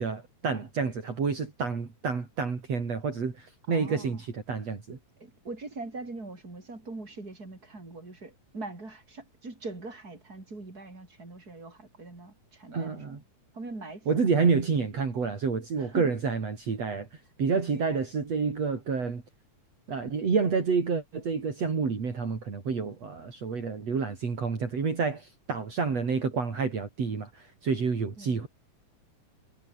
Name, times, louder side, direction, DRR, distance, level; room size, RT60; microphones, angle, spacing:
voice 1, 0.0-5.0 12.7-13.2 14.1-17.1 17.4-19.2 19.9-28.5, right 5 dB, 50° right, 5.0 m, -29 dB
voice 2, 3.7-4.2 5.2-13.2 13.5-14.1 15.8-16.1 28.2-28.5, right 2 dB, 25° right, 6.8 m, -42 dB
omnidirectional pair, 3.7 m